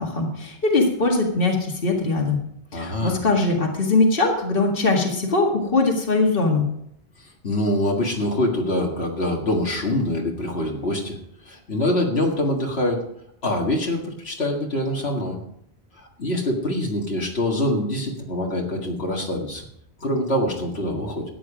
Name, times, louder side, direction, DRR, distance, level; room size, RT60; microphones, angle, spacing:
voice 1, 0.0-2.4 2.7-6.7, left 3 dB, 60° left, 1 dB, 2.1 m, -21 dB
voice 2, 2.7-3.2 7.4-11.2 11.5-13.0 13.4-15.4 16.0-19.6 20.0-21.3, left 1 dB, 80° left, 0 dB, 2.2 m, -24 dB
14.0 x 9.5 x 5.0 m, 0.74 s
omnidirectional pair, 1.1 m